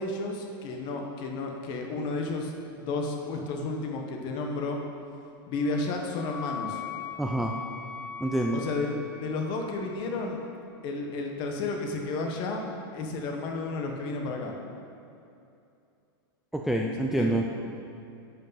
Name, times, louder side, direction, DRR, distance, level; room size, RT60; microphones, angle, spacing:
voice 1, 0.0-4.8 5.5-6.8 8.5-8.9 9.2-10.4 10.8-14.5 17.0-17.4, left 3 dB, 35° left, 2 dB, 1.3 m, -32 dB
Wind instrument woodwind instrument, 5.6-10.3, left 6 dB, 15° left, 1.2 m, -41 dB
voice 2, 7.2-7.5 8.2-8.6 16.5-17.4, right 1 dB, ahead, 0 dB, 0.3 m, -27 dB
11.0 x 5.2 x 5.8 m, 2.6 s
supercardioid pair, 150°, 12 cm